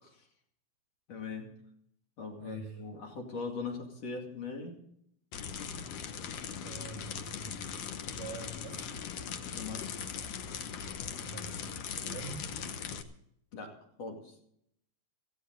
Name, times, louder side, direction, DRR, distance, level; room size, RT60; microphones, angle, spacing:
voice 1, 1.1-1.5 2.2-4.8 8.3-8.4 9.5-10.0 13.5-14.3, left 4 dB, 45° left, 1 dB, 3.2 m, -41 dB
voice 2, 2.4-2.8 6.6-7.6 8.1-9.1 11.2-11.6 11.9-12.5, right 4 dB, 75° right, -2 dB, 7.5 m, -45 dB
sound 1, 5.3-13.0, left 7 dB, 80° left, 1.4 m, -40 dB
18.5 x 14.5 x 3.9 m, 0.72 s
omnidirectional pair, 4.4 m